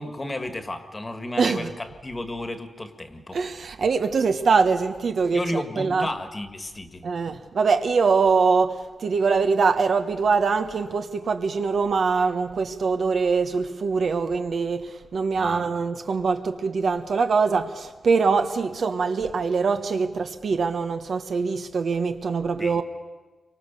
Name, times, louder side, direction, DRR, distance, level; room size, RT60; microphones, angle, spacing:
voice 1, 0.0-3.4 5.3-7.0 15.3-15.6 22.6-22.8, left 1 dB, 20° left, 1.8 m, -32 dB
voice 2, 1.4-1.7 3.3-6.1 7.0-22.8, right 5 dB, 55° right, 1.2 m, -23 dB
29.5 x 24.5 x 6.8 m
wide cardioid pair, 155°, 0 cm